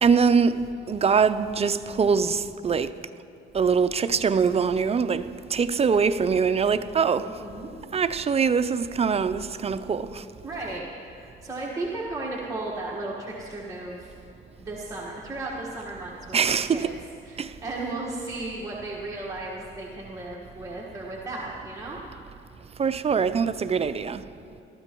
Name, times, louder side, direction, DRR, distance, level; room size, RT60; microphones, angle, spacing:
voice 1, 0.0-2.9 3.5-7.3 7.9-10.2 16.3-17.0 17.4-17.5 22.8-24.2, right 6 dB, 30° right, 0.4 m, -23 dB
voice 2, 7.2-7.7 10.4-14.1 14.6-16.9 17.2-22.0, right 2 dB, 15° right, 1.5 m, -35 dB
19.5 x 13.5 x 3.0 m
cardioid pair, 90°, 20 cm